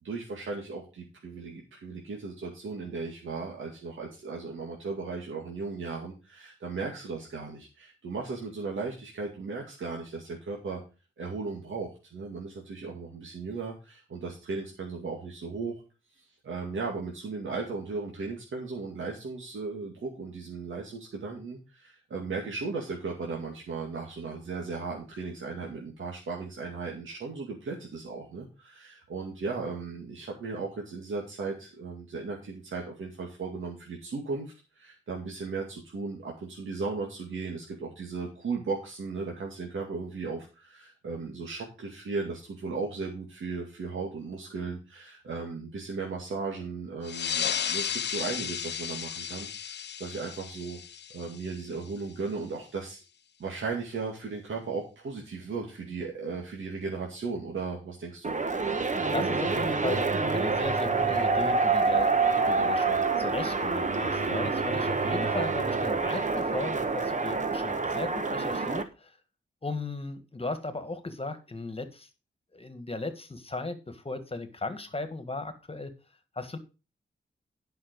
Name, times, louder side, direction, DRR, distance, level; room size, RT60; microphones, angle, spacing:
voice 1, 0.0-10.8 11.2-15.8 16.4-50.8 51.1-53.0 53.4-58.3, right 4 dB, 80° right, -1 dB, 2.3 m, -36 dB
sound 1, 47.0-52.1, left 8 dB, 60° left, 0.5 m, -34 dB
sound 2, 58.2-68.8, right 4 dB, 40° right, 1.2 m, -27 dB
voice 2, 59.1-69.2 69.6-72.1 72.5-75.9 76.3-76.6, left 2 dB, 30° left, 9 dB, 1.6 m, -36 dB
11.0 x 5.7 x 5.2 m, 0.31 s
wide cardioid pair, 85°, 20 cm